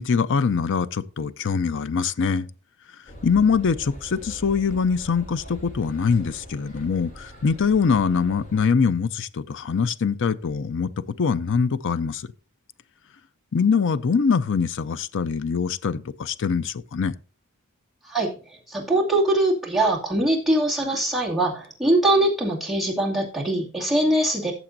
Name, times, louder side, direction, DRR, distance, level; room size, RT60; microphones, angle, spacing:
voice 1, 0.0-2.5 3.2-12.3 13.5-17.1, left 5 dB, 55° left, 0.5 m, -23 dB
sound 1, 3.1-8.6, equal, 35° left, 4.9 m, -42 dB
voice 2, 18.0-24.5, right 1 dB, ahead, 2.3 m, -22 dB
14.5 x 6.9 x 2.6 m
head